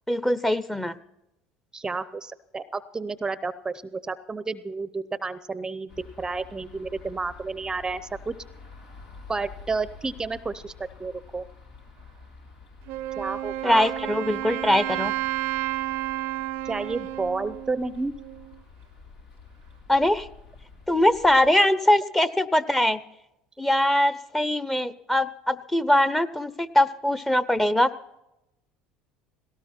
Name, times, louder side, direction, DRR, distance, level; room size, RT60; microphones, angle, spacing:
voice 1, 0.1-1.0 13.6-15.1 19.9-20.3 20.9-23.0 23.6-27.9, left 1 dB, 10° left, 15 dB, 0.9 m, -22 dB
voice 2, 1.7-8.3 9.3-11.5 13.2-13.9 16.6-18.1, right 4 dB, 20° right, 15 dB, 0.7 m, -31 dB
sound 1, 5.9-21.5, left 4 dB, 80° left, 6.0 m, -48 dB
Wind instrument woodwind instrument, 12.9-18.6, right 16 dB, 65° right, 0.6 m, -31 dB
18.5 x 17.5 x 4.4 m, 0.87 s
hypercardioid pair, 85°, 4 cm